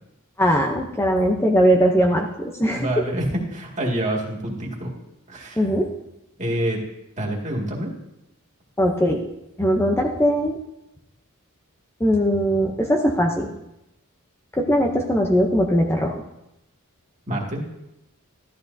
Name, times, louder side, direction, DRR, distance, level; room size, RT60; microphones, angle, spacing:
voice 1, 0.4-2.9 5.6-5.9 8.8-9.2 9.6-10.6 12.0-13.5 14.5-16.1, equal, 10° left, 1 dB, 0.7 m, -20 dB
voice 2, 2.7-4.9 5.3-5.7 6.4-6.8 7.2-7.9 17.3-17.6, right 1 dB, 35° right, -1 dB, 2.1 m, -26 dB
13.5 x 12.0 x 2.7 m, 0.88 s
head